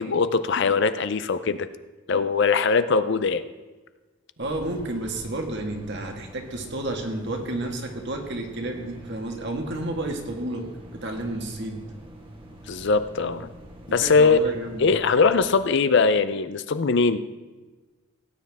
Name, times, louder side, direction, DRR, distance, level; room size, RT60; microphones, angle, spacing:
voice 1, 0.0-1.7 2.1-3.4 12.7-13.5 13.9-14.4 14.8-17.2, left 4 dB, 60° left, 12 dB, 0.6 m, -21 dB
sound 1, 4.4-15.5, right 1 dB, 25° right, 1.4 m, -44 dB
voice 2, 4.4-10.7 10.9-11.8 13.9-14.9, right 2 dB, 55° right, 3 dB, 1.8 m, -31 dB
17.0 x 9.4 x 3.6 m, 1.2 s
head